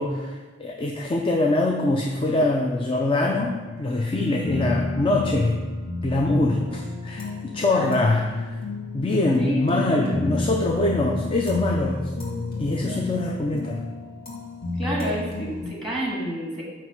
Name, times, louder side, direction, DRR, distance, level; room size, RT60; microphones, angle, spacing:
voice 1, 0.0-5.6 6.0-8.6 8.9-12.1 12.6-13.8, left 2 dB, 30° left, 1 dB, 0.5 m, -23 dB
sound 1, 3.3-15.7, left 3 dB, 50° left, 1.9 m, -31 dB
voice 2, 7.6-8.0 9.4-10.2 14.8-16.6, right 1 dB, ahead, -4 dB, 1.9 m, -30 dB
9.2 x 3.2 x 5.9 m, 1.3 s
head